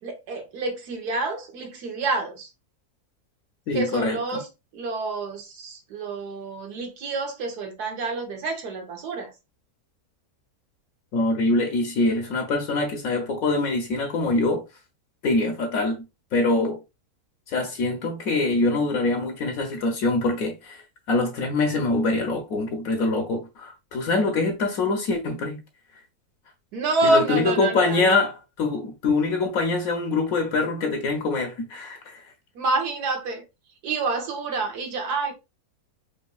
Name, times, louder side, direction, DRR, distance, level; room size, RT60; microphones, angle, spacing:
voice 1, 0.0-2.5 3.7-4.5 4.7-9.3 26.7-28.2 32.5-33.4 33.8-35.3, right 3 dB, 85° right, 1.5 m, -27 dB
voice 2, 3.7-4.4 11.1-14.6 15.2-16.0 16.3-16.8 17.5-20.8 21.1-25.6 27.0-32.2, left 3 dB, 70° left, 1.1 m, -24 dB
5.1 x 2.5 x 2.3 m
omnidirectional pair, 1.6 m